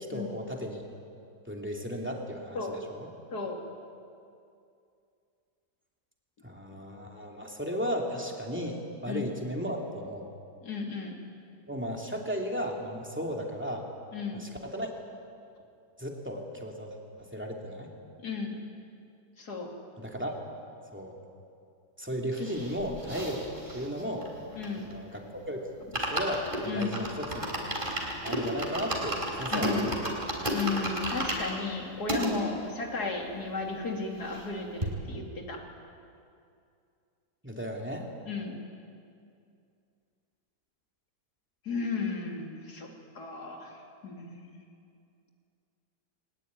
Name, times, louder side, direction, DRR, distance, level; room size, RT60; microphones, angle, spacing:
voice 1, 0.1-0.8 1.5-3.1 6.4-10.2 11.7-13.9 14.4-14.9 16.0-16.9 17.3-17.9 20.0-20.3 20.9-21.2 22.0-23.4 23.7-24.3 24.9-25.6 25.9-27.7 28.2-30.4 37.4-38.1, equal, 5° right, 0 dB, 2.8 m, -35 dB
voice 2, 10.6-11.1 14.1-14.4 18.2-18.6 19.4-19.7 24.5-24.9 26.7-26.9 29.5-30.0 30.5-35.6 38.3-38.6 41.7-42.9 43.2-43.8 44.0-44.4, left 4 dB, 65° left, 1 dB, 3.4 m, -34 dB
sound 1, 22.3-25.1 25.4-25.5 25.8-32.3 32.9-33.0 33.2-33.3 33.6-34.5 34.8-34.9, right 1 dB, 30° right, 4.0 m, -33 dB
21.0 x 20.0 x 9.6 m, 2.4 s
omnidirectional pair, 1.8 m